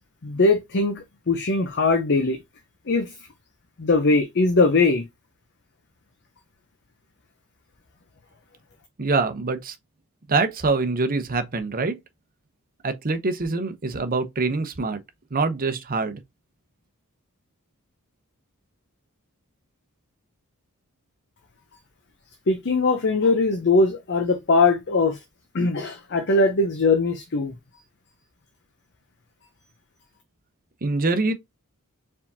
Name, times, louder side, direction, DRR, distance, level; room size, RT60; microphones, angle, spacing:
voice 1, 0.2-2.4 2.9-3.1 3.8-5.0 22.5-25.2 25.5-27.5, left 3 dB, 50° left, 0.7 m, -21 dB
voice 2, 9.0-9.8 10.3-12.0 12.8-15.0 15.3-16.2 30.8-31.3, right 3 dB, 40° right, 0.8 m, -24 dB
4.8 x 3.6 x 2.7 m
head